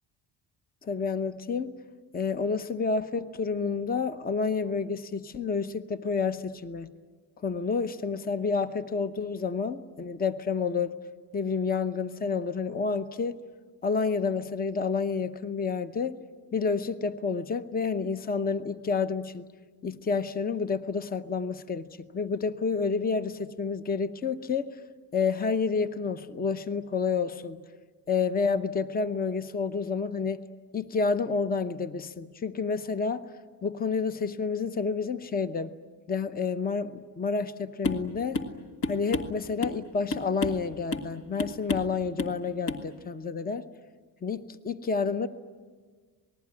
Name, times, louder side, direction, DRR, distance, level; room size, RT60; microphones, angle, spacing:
voice 1, 0.8-1.7 2.1-6.9 7.4-11.0 11.3-13.4 13.8-16.2 16.5-19.5 19.8-24.7 25.1-27.6 28.1-30.4 30.7-33.3 33.6-35.7 36.1-38.4 38.9-43.6 44.2-45.3, left 5 dB, 20° left, 11 dB, 0.8 m, -29 dB
sound 1, 37.8-38.1 38.3-38.5 38.8-39.8 40.1-40.6 40.9-41.1 41.4-41.9 42.2-42.4 42.7-42.8, left 3 dB, 55° left, 2.0 m, -31 dB
27.5 x 20.0 x 9.7 m, 1.5 s
cardioid pair, 155°, 42 cm